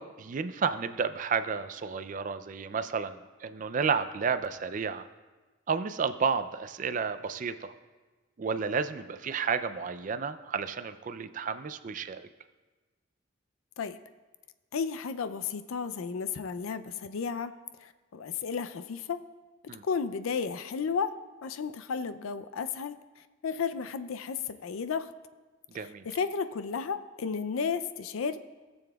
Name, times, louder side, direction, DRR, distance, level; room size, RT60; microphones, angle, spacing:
voice 1, 0.0-5.1 5.7-7.7 8.4-12.2 19.7-19.8 25.7-26.1, right 5 dB, 40° right, 11 dB, 0.3 m, -31 dB
voice 2, 14.7-17.5 17.8-19.2 19.8-21.1 21.4-23.0 23.4-25.1 25.7-28.4, left 5 dB, 85° left, 11 dB, 0.4 m, -33 dB
19.0 x 7.0 x 2.3 m, 1.3 s
head